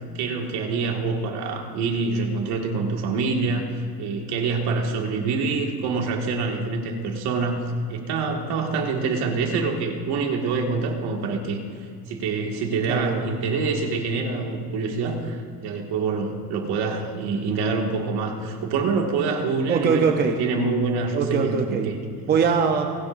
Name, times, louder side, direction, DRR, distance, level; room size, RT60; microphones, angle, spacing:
voice 1, 0.1-7.6 7.9-11.6 12.1-20.1 20.4-22.0, right 4 dB, 65° right, 1 dB, 2.0 m, -26 dB
voice 2, 12.9-13.2 19.7-20.4 21.1-21.9 22.3-22.9, right 6 dB, 25° right, 3 dB, 0.6 m, -22 dB
29.0 x 11.0 x 2.6 m, 2.2 s
cardioid pair, 180°, 41 cm